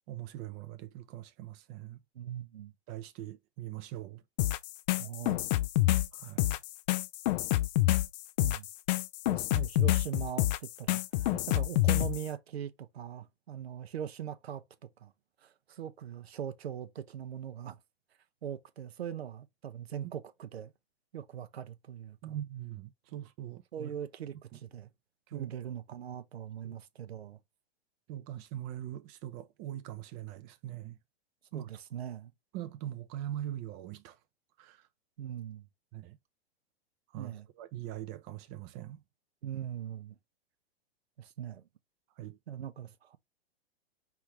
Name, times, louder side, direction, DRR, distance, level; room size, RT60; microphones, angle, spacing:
voice 1, 0.1-2.0 2.9-4.2 6.1-6.6 20.0-20.1 22.2-23.9 25.3-25.5 26.6-26.7 28.1-31.0 31.5-31.7 32.5-34.2 34.6-34.9 35.9-36.2 37.1-39.0 42.2-42.4, right 12 dB, 40° right, 0.7 m, -42 dB
voice 2, 2.1-2.7 5.0-5.5 8.4-8.7 9.3-14.6 15.0-15.1 15.4-17.8 18.4-20.7 21.1-22.4 23.7-24.9 25.3-27.4 31.5-32.3 35.2-35.7 37.2-37.5 39.4-40.1 41.2-41.7 42.5-43.2, right 9 dB, 80° right, 0.8 m, -41 dB
sound 1, 4.4-12.2, left 16 dB, 45° left, 0.4 m, -28 dB
4.6 x 3.6 x 3.1 m
hypercardioid pair, 110°, 31 cm